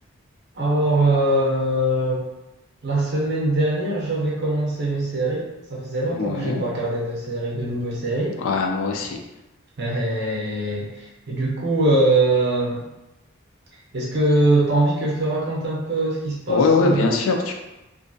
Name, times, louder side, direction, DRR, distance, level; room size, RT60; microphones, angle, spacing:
voice 1, 0.5-2.2 2.8-8.4 9.8-12.9 13.9-17.1, right 1 dB, 50° right, -4 dB, 0.6 m, -22 dB
voice 2, 6.1-6.7 8.4-9.2 16.5-17.5, left 4 dB, 75° left, 3 dB, 0.4 m, -21 dB
2.5 x 2.2 x 2.6 m, 0.99 s
head